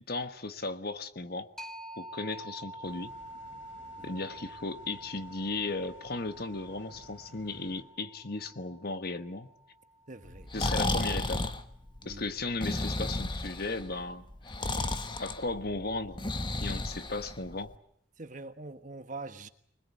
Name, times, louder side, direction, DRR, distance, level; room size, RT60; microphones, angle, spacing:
voice 1, 0.1-1.5 2.0-3.1 4.0-9.5 10.5-11.4 12.0-14.3 15.2-16.3 16.6-17.7, left 3 dB, 50° left, 1.3 m, -36 dB
sound 1, 1.6-11.0, right 1 dB, 5° left, 1.2 m, -48 dB
sound 2, 2.8-7.8, left 1 dB, 75° left, 4.2 m, -56 dB
voice 2, 10.1-10.5 12.0-12.2 18.2-19.5, right 3 dB, 40° right, 1.4 m, -43 dB
Breathing, 10.3-17.7, left 2 dB, 25° left, 1.1 m, -33 dB
25.0 x 21.0 x 8.5 m
head